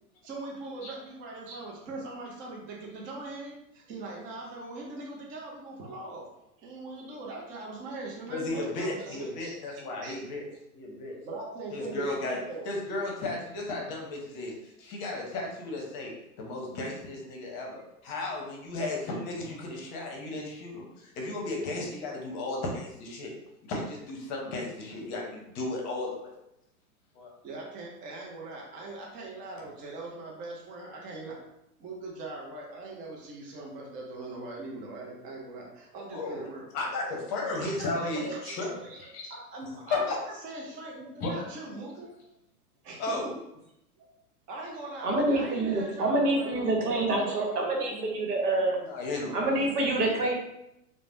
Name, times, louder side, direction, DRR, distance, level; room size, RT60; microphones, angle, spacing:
voice 1, 0.2-6.3 6.6-10.2 11.2-12.7 27.4-31.4 31.8-36.7 37.0-37.2 37.6-42.1 42.8-43.3 44.0-44.1 44.5-48.3, right 2 dB, 20° right, -2 dB, 0.4 m, -41 dB
voice 2, 8.3-10.4 10.7-11.2 11.7-12.4 12.7-16.1 16.4-23.3 23.6-26.4 27.1-27.3 36.1-36.4 36.7-38.9 39.1-39.2 39.9-40.2 41.2-41.3 43.0-43.3 48.8-49.5, left 2 dB, 35° left, 0 dB, 0.8 m, -34 dB
voice 3, 45.0-48.8 49.3-50.3, right 2 dB, 90° right, 0 dB, 0.9 m, -26 dB
3.2 x 2.1 x 2.5 m, 0.83 s
hypercardioid pair, 115°, 45 cm